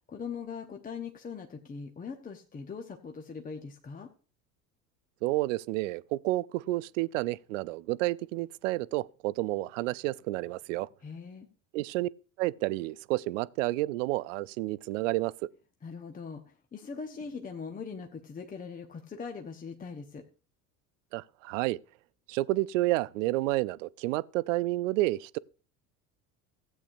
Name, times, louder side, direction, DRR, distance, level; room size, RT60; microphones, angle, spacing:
voice 1, 0.1-4.1 11.0-11.5 15.8-20.2, left 5 dB, 20° left, 0.9 m, -41 dB
voice 2, 5.2-10.9 11.7-12.1 12.4-15.5 21.1-21.8 22.3-25.4, right 18 dB, 55° right, 0.5 m, -30 dB
15.5 x 8.4 x 2.6 m
figure-of-eight pair, 70°, 46 cm